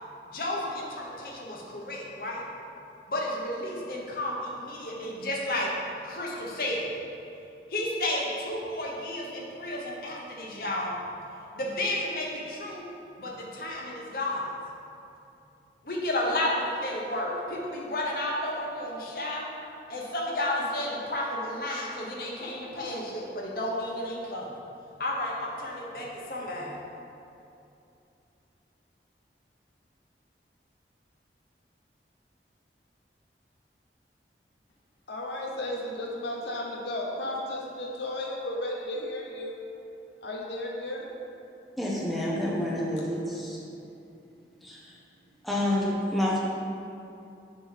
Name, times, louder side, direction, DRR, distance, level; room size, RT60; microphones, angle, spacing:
voice 1, 0.3-2.5 3.1-5.7 6.0-6.9 7.7-11.0 11.5-12.9 13.2-14.5 15.8-19.5 19.9-24.5 25.0-26.8, left 1 dB, 55° left, -3 dB, 1.1 m, -32 dB
voice 2, 35.1-39.6 40.2-41.1, left 1 dB, 80° left, -2 dB, 0.9 m, -34 dB
voice 3, 41.8-43.6 44.6-44.8 45.4-46.4, left 1 dB, ahead, -6 dB, 0.7 m, -28 dB
6.9 x 3.0 x 5.7 m, 2.7 s
head